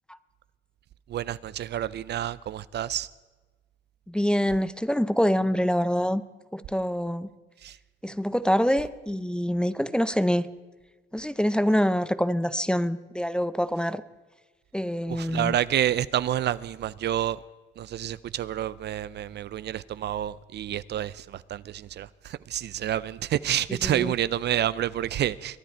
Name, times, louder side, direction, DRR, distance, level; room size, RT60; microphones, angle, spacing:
voice 1, 1.1-3.1 7.6-7.8 15.1-17.4 17.8-25.6, right 11 dB, 60° right, 0.4 m, -29 dB
voice 2, 4.1-6.2 6.5-7.3 8.0-10.5 11.1-14.0 14.7-15.6 23.7-24.1, equal, 5° left, 0.5 m, -25 dB
22.5 x 10.0 x 4.5 m
cardioid pair, 90°, 20 cm